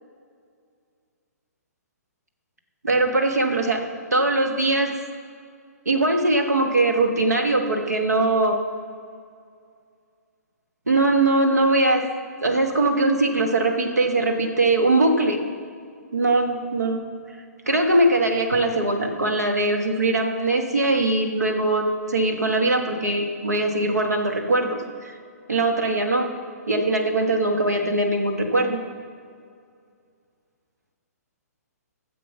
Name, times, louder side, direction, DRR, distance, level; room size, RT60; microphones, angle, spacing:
voice 1, 2.8-3.8 4.1-4.9 5.8-8.6 10.9-12.0 12.4-15.4 16.1-17.0 17.7-25.1 25.5-26.3 26.7-28.8, right 2 dB, 75° right, 4 dB, 1.5 m, -21 dB
13.0 x 7.5 x 5.7 m, 2.2 s
figure-of-eight pair, 125°, 9 cm